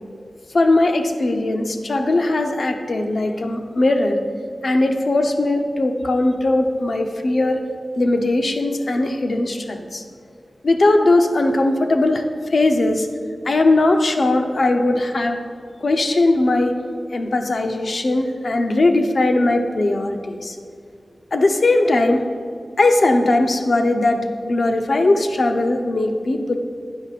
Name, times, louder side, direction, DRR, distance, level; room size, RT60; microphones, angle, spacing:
voice 1, 0.5-4.2 4.6-7.6 8.0-10.0 10.6-13.1 13.5-15.4 15.8-16.7 17.1-20.6 21.3-22.2 22.8-26.6, left 2 dB, 65° left, 4 dB, 0.8 m, -19 dB
15.5 x 9.9 x 2.5 m, 2.3 s
wide cardioid pair, 95°, 0 cm